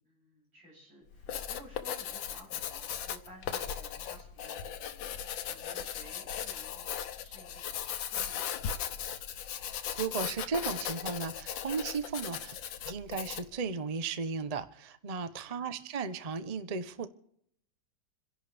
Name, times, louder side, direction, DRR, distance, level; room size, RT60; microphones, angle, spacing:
voice 1, 0.0-9.0 15.3-15.6, equal, 70° right, 8.7 m, -56 dB
Writing, 1.1-13.6, left 9 dB, 75° left, 1.6 m, -38 dB
voice 2, 10.0-12.6 12.8-17.1, right 5 dB, 40° right, 0.5 m, -35 dB
28.0 x 11.0 x 3.5 m
omnidirectional pair, 2.1 m